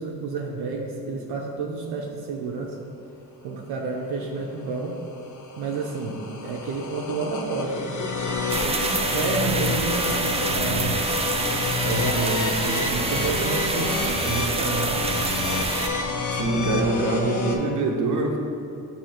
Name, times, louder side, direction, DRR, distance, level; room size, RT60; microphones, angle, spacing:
voice 1, 0.0-2.8 3.4-5.0 5.6-8.0 8.6-11.1 11.8-15.1, right 4 dB, 85° right, -1 dB, 0.7 m, -30 dB
sound 1, 4.5-17.6, left 4 dB, 50° left, 0.6 m, -29 dB
sound 2, 8.5-15.9, right 3 dB, 15° right, 0.3 m, -27 dB
voice 2, 16.3-18.4, right 2 dB, 55° right, 0 dB, 0.9 m, -24 dB
7.8 x 2.8 x 4.3 m, 2.6 s
cardioid pair, 95°, 37 cm